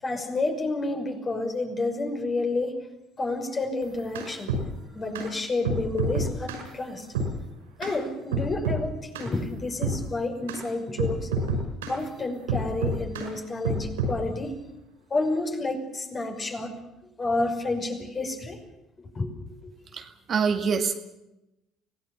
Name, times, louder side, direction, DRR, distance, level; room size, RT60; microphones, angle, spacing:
voice 1, 0.0-2.8 3.2-4.5 4.9-7.1 7.8-11.3 11.9-14.5 15.1-16.7 17.2-18.6 19.0-19.3 19.6-19.7, left 2 dB, 35° left, 3 dB, 5.8 m, -30 dB
sound 1, 3.8-4.7 5.2-5.3 5.7-6.7 7.2-7.3 7.8-8.0 8.3-8.8 9.2-9.3 9.8-10.0 10.5-10.6 11.0-12.0 12.5-13.3 13.7-14.2, right 3 dB, 85° right, 5.5 m, -28 dB
voice 2, 19.9-20.9, right 6 dB, 45° right, 6 dB, 2.1 m, -26 dB
25.5 x 18.0 x 6.9 m, 0.91 s
hypercardioid pair, 60°, 0 cm